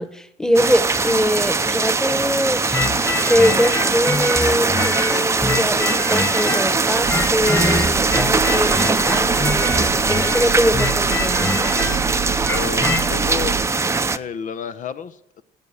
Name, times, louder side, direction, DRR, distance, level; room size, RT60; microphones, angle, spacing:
voice 1, 0.0-2.8 3.3-11.7, equal, 5° left, 12 dB, 1.3 m, -22 dB
sound 1, 0.5-14.2, right 3 dB, 15° right, 0.7 m, -21 dB
sound 2, 2.7-6.8 7.1-13.0, left 3 dB, 20° left, 1.8 m, -25 dB
sound 3, 7.0-13.7, right 11 dB, 65° right, 1.2 m, -31 dB
voice 2, 12.5-13.7 14.1-15.4, left 8 dB, 50° left, 12 dB, 0.8 m, -30 dB
17.5 x 7.1 x 9.5 m, 0.84 s
cardioid pair, 110°, 17 cm